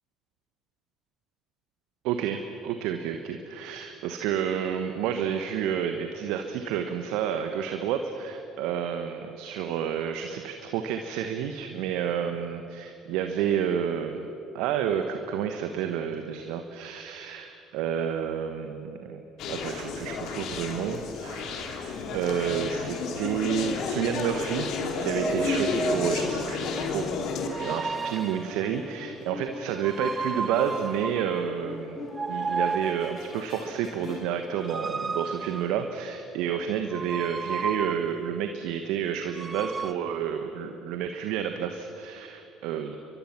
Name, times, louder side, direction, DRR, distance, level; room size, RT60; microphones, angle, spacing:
voice 1, 2.0-24.7 25.0-27.1 27.6-43.0, right 8 dB, 65° right, 6 dB, 1.3 m, -30 dB
Conversation, 19.4-27.8, left 4 dB, 60° left, 2.8 m, -31 dB
sound 1, 23.2-23.5 24.9-26.5 27.4-28.6 29.8-31.6 32.1-33.3 34.5-36.1 36.9-38.3 39.3-39.9, right 4 dB, 30° right, 0.4 m, -33 dB
sound 2, 26.4-34.7, left 4 dB, 40° left, 2.1 m, -44 dB
29.5 x 23.5 x 6.0 m, 2.9 s
hypercardioid pair, 55°, 0 cm